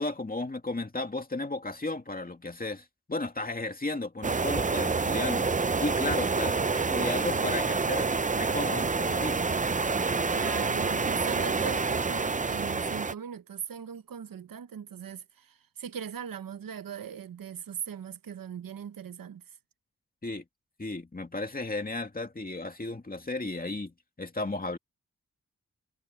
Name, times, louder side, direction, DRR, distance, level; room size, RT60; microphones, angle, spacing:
voice 1, 0.0-5.5 5.8-9.5 20.2-20.4 20.8-24.8, left 2 dB, 25° left, 2.3 m, -34 dB
sound 1, 4.2-13.1, right 4 dB, 25° right, 0.6 m, -28 dB
voice 2, 10.3-19.4, right 8 dB, 90° right, 0.9 m, -39 dB
wide cardioid pair, 90°, 33 cm